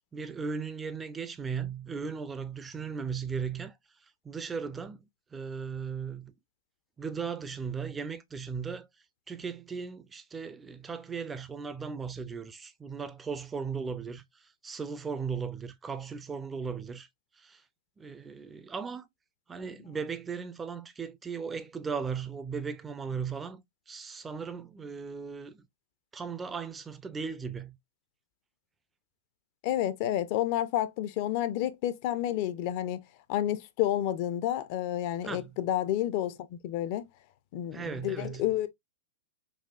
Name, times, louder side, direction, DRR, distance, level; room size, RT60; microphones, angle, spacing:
voice 1, 0.1-3.7 4.2-5.0 5.3-6.3 7.0-8.9 9.3-14.2 14.6-17.1 17.4-17.6 18.0-19.1 19.5-25.6 26.1-27.8 35.2-35.5 37.7-38.4, right 5 dB, 15° right, 0.4 m, -37 dB
voice 2, 29.6-33.0 33.3-37.0 37.5-38.7, left 12 dB, 45° left, 0.5 m, -30 dB
4.0 x 2.5 x 2.3 m
hypercardioid pair, 135°, 0 cm